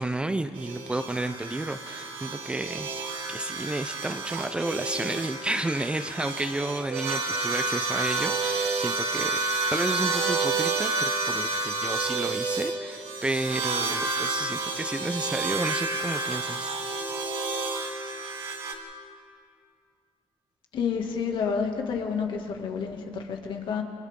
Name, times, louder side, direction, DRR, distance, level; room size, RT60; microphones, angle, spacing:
voice 1, 0.0-9.3 9.7-16.7, right 2 dB, 10° right, 9 dB, 0.5 m, -31 dB
sound 1, 0.5-18.7, right 3 dB, 60° right, 3.0 m, -30 dB
voice 2, 20.7-23.8, left 6 dB, 55° left, 3 dB, 2.2 m, -29 dB
30.0 x 26.5 x 3.7 m, 2.3 s
cardioid pair, 155°, 10 cm